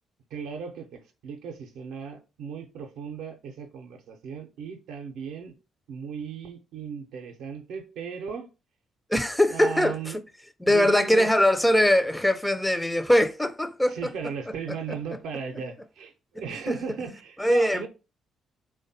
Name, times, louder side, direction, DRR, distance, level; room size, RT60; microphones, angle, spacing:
voice 1, 0.3-5.6 5.9-8.5 9.5-10.2 10.7-11.3 13.9-17.9, right 6 dB, 70° right, 0.5 m, -36 dB
voice 2, 9.1-10.1 10.6-14.0 16.7-16.8 17.4-17.9, left 1 dB, 10° left, 0.3 m, -22 dB
3.3 x 2.1 x 2.6 m
hypercardioid pair, 45°, 0 cm